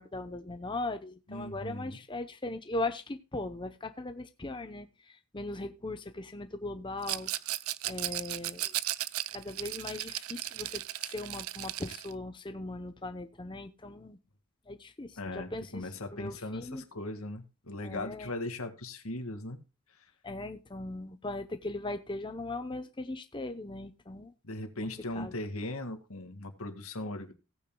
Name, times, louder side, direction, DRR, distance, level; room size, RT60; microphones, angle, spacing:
voice 1, 0.0-7.3 7.8-8.7 9.3-14.2 14.7-16.8 17.8-18.3 20.2-24.3 25.1-25.3, left 2 dB, 20° left, 8 dB, 0.7 m, -39 dB
voice 2, 1.3-2.0 15.2-19.6 24.4-27.3, left 2 dB, 85° left, 6 dB, 2.0 m, -39 dB
Rattle, 7.0-12.1, right 15 dB, 80° right, 0.5 m, -36 dB
17.0 x 9.1 x 2.2 m, 0.30 s
head